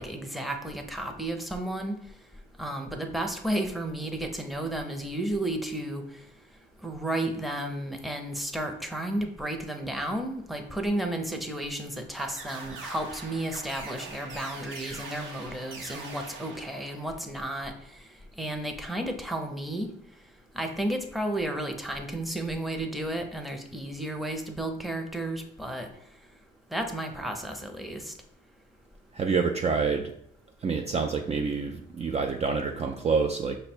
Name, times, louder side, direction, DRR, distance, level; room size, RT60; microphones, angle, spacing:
voice 1, 0.0-2.0 2.6-6.0 6.8-17.7 18.4-19.9 20.5-25.9 26.7-28.1, right 1 dB, ahead, 4 dB, 0.7 m, -32 dB
sound 1, 12.2-17.3, right 3 dB, 80° right, 0.9 m, -43 dB
voice 2, 29.1-30.1 30.6-33.6, right 5 dB, 35° right, 4 dB, 0.4 m, -27 dB
5.6 x 2.2 x 4.3 m, 0.72 s
cardioid pair, 90°, 20 cm